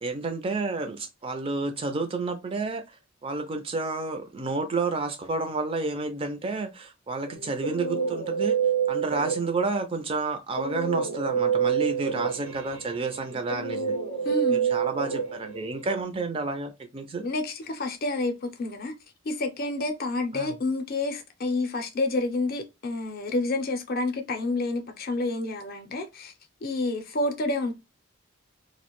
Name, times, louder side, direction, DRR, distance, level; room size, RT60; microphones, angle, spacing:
voice 1, 0.0-8.6 8.9-14.0 14.5-17.2 20.3-20.5, right 3 dB, 25° right, 0.3 m, -30 dB
Guitar, 7.3-9.8 10.5-16.0, right 7 dB, 85° right, 0.8 m, -28 dB
voice 2, 14.2-14.7 17.2-18.9 19.2-26.3 26.6-27.7, left 2 dB, 45° left, 0.5 m, -29 dB
2.4 x 2.1 x 2.9 m
head